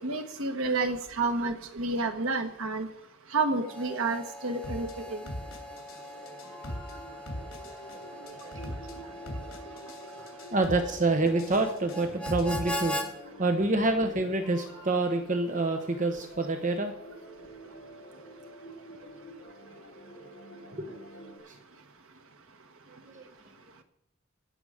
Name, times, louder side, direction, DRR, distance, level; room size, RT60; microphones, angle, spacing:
voice 1, 0.0-2.9 3.3-5.2, right 3 dB, 80° right, 6 dB, 1.4 m, -30 dB
Harmonica, 3.6-13.1, equal, 5° left, 1.4 m, -41 dB
sound 1, 4.6-4.9 5.3-6.0 6.3-6.9 7.3-7.9 8.3-8.9 9.3-10.0 10.3-10.9 11.3-12.6, equal, 70° left, 3.1 m, -38 dB
sound 2, 5.4-21.4, equal, 55° left, 3.2 m, -48 dB
voice 2, 7.9-8.7 9.0-9.1 10.5-13.0 13.2-16.9 20.8-21.0 21.5-21.6 22.9-23.3, right 2 dB, 40° right, 5 dB, 1.1 m, -28 dB
18.5 x 7.0 x 5.1 m, 0.78 s
head